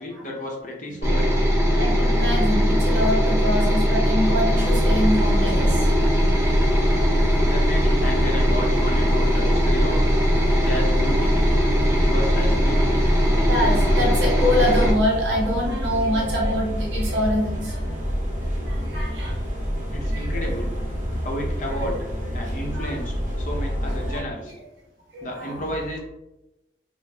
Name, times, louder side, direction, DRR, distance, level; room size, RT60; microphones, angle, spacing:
voice 1, 0.0-1.4 7.5-10.0 10.5-11.5 11.9-13.0 19.9-20.7 21.2-22.0 22.3-24.5 25.2-26.0, left 1 dB, 45° left, -1 dB, 0.7 m, -32 dB
sound 1, 1.0-14.9, equal, 15° right, 1.1 m, -20 dB
voice 2, 1.8-6.4 11.1-11.2 12.4-12.5 13.5-18.0 18.6-19.3 20.1-20.5 21.7-21.9 22.7-23.0 23.8-24.2 25.1-25.7, left 1 dB, 75° right, -3 dB, 1.0 m, -25 dB
sound 2, 4.6-24.2, equal, 40° right, 0.8 m, -28 dB
3.0 x 2.5 x 3.3 m, 0.94 s
head